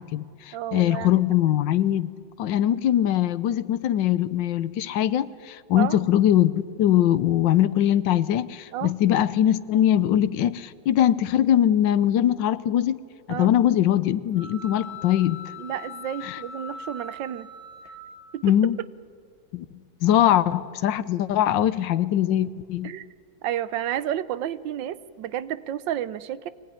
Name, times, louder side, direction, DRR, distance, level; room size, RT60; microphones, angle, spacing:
voice 1, 0.0-2.1 2.4-13.0 13.3-15.4 16.2-16.4 18.4-18.8 19.5-19.6 20.0-22.9, left 11 dB, 85° left, 16 dB, 1.5 m, -22 dB
voice 2, 0.5-1.2 5.7-6.0 8.7-8.9 13.3-13.5 15.6-17.5 18.3-18.4 22.8-23.1 23.4-26.5, right 11 dB, 90° right, 16 dB, 1.5 m, -31 dB
sound 1, 14.3-18.4, left 3 dB, 15° left, 5.2 m, -41 dB
23.5 x 18.0 x 10.0 m, 2.2 s
omnidirectional pair, 1.9 m